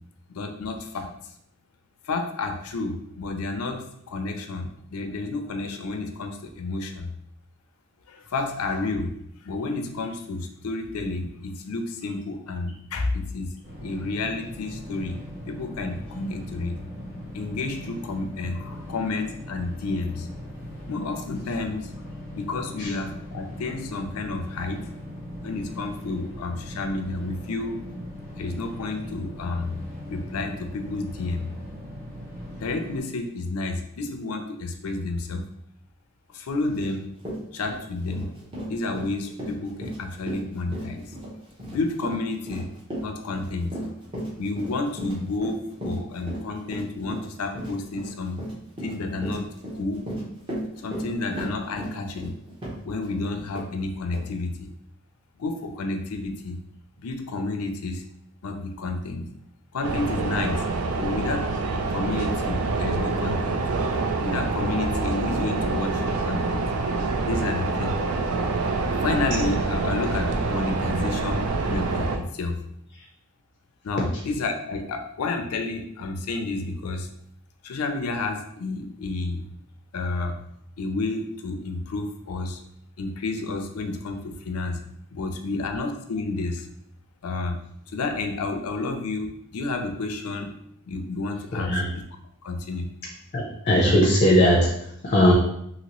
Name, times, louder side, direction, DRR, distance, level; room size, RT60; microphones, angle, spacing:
voice 1, 0.3-1.1 2.0-7.1 8.1-9.1 9.4-15.2 15.5-16.8 17.3-20.3 20.9-21.9 22.3-24.8 25.4-27.8 28.4-29.7 30.1-31.5 32.6-35.4 36.3-37.1 37.5-38.4 38.7-41.1 41.6-42.7 43.0-43.7 44.4-48.4 48.8-49.5 49.7-50.0 50.8-52.4 52.8-54.7 55.4-56.6 57.0-58.0 58.4-59.3 59.7-60.6 60.9-61.5 61.9-63.6 64.2-66.6 67.3-68.0 69.0-72.6 73.8-77.1 77.6-79.5 79.9-80.4 80.8-82.6 83.0-84.8 85.1-86.7 87.2-87.6 87.9-90.5 90.9-92.0 92.4-92.9, left 3 dB, 90° left, 6 dB, 0.4 m, -30 dB
sound 1, 13.6-33.0, equal, 65° right, 1.4 m, -39 dB
Run, 36.8-36.9 37.2-53.2 53.5-53.7 54.1-54.3, right 1 dB, 25° right, 0.8 m, -35 dB
sound 2, 59.8-72.2, right 3 dB, 85° right, 0.4 m, -26 dB
voice 2, 91.5-91.9 93.3-94.7 95.0-95.3, equal, 35° left, -1 dB, 0.5 m, -19 dB
2.9 x 2.8 x 2.9 m, 0.74 s
head